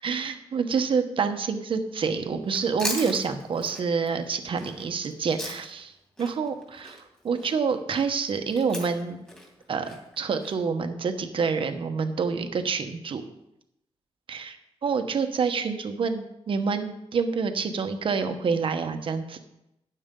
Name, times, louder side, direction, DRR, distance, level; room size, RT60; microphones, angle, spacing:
voice 1, 0.0-5.9 6.2-9.2 9.7-9.9 10.2-13.2 14.3-14.6 14.8-19.4, right 5 dB, 55° right, 7 dB, 1.1 m, -27 dB
Chewing mastication, 2.4-5.9 6.2-10.5, left 1 dB, 10° left, 2.6 m, -38 dB
12.5 x 9.5 x 3.8 m, 0.85 s
wide cardioid pair, 130°, 11 cm